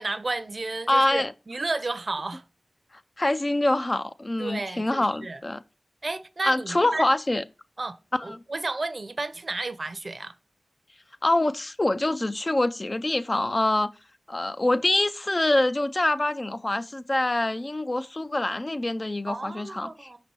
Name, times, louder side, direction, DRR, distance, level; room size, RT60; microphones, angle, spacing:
voice 1, 0.0-2.4 4.4-5.4 6.0-7.1 7.8-8.0 8.2-10.3 19.3-20.2, right 3 dB, 50° right, 0.5 m, -32 dB
voice 2, 0.9-1.3 3.2-5.6 6.4-7.4 8.3-8.4 11.2-13.9 14.3-20.1, left 1 dB, 35° left, 0.3 m, -25 dB
5.2 x 4.1 x 4.5 m
cardioid pair, 50°, 0 cm